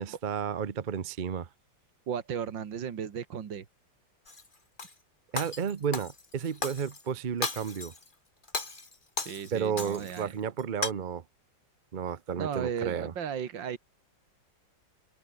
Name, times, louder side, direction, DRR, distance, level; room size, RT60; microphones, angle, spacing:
voice 1, 0.0-1.5 5.3-7.9 9.5-11.2 11.9-13.1, right 7 dB, 40° right, 0.7 m, -32 dB
voice 2, 2.1-3.7 9.3-10.3 12.4-13.8, right 7 dB, 75° right, 2.4 m, -35 dB
Shatter, 4.3-4.9 5.4-7.0 7.4-8.1 8.4-10.2 10.6-10.9, left 3 dB, 25° left, 2.4 m, -36 dB
open air
omnidirectional pair, 2.0 m